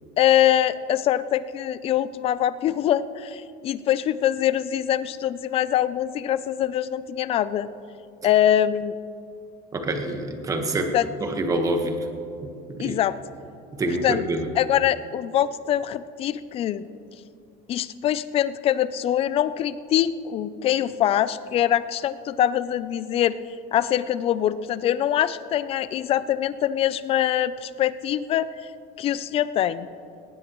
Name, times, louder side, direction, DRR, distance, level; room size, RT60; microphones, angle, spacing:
voice 1, 0.2-7.7 8.2-9.0 10.9-11.1 12.8-13.2 14.0-14.2 14.6-16.9 17.7-23.4 23.7-28.5 29.0-29.9, left 11 dB, 30° left, 15 dB, 0.4 m, -23 dB
voice 2, 9.7-10.9 11.2-12.1 12.7-13.0 13.7-14.5, right 1 dB, 20° right, 5 dB, 1.2 m, -26 dB
19.5 x 18.0 x 3.1 m, 2.6 s
cardioid pair, 160°, 19 cm